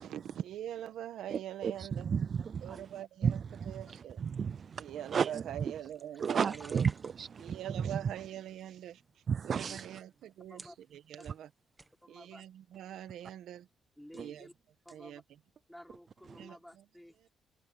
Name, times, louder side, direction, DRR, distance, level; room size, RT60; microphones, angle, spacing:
voice 1, 0.0-2.1 2.6-4.2 4.8-6.8 7.4-11.5 12.1-13.7 14.1-14.5 14.9-15.2 16.4-16.8 17.2-17.3, right 11 dB, 75° right, 1.6 m, -44 dB
voice 2, 1.6-2.8 3.2-3.3 4.2-5.4 6.2-7.6 9.3-9.9, right 6 dB, 50° right, 0.4 m, -32 dB
sound 1, 4.2-7.5 8.2-8.8 9.5-9.6 10.3-10.4 10.6-11.4 11.8-11.9, right 2 dB, 20° right, 1.6 m, -52 dB
voice 3, 12.0-12.4 14.0-14.5 14.8-15.2 15.7-17.3, equal, 5° left, 4.3 m, -53 dB
cardioid pair, 90°, 0 cm